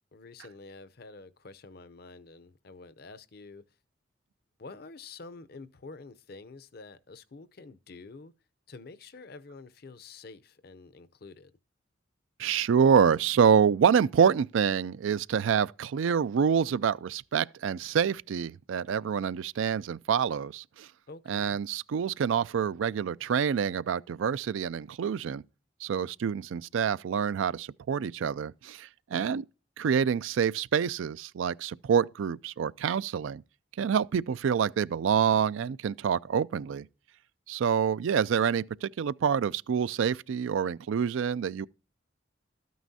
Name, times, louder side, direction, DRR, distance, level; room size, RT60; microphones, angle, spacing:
voice 1, 0.1-3.6 4.6-8.3 8.7-11.5 21.1-21.6 29.1-29.3, left 3 dB, 55° left, 0.6 m, -48 dB
voice 2, 12.4-20.9 21.3-25.4 25.8-29.4 29.8-33.4 33.8-36.9 37.5-41.7, right 7 dB, 85° right, 0.4 m, -27 dB
13.0 x 9.3 x 2.7 m
head